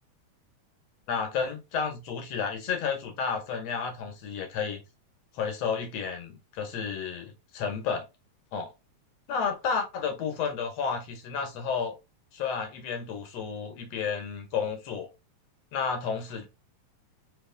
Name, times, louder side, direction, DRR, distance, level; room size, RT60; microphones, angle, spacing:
voice 1, 1.1-4.8 5.3-8.0 8.5-8.7 9.3-12.0 12.3-15.1 15.7-16.5, left 6 dB, 65° left, 2.0 m, -31 dB
5.0 x 3.2 x 3.3 m
omnidirectional pair, 3.4 m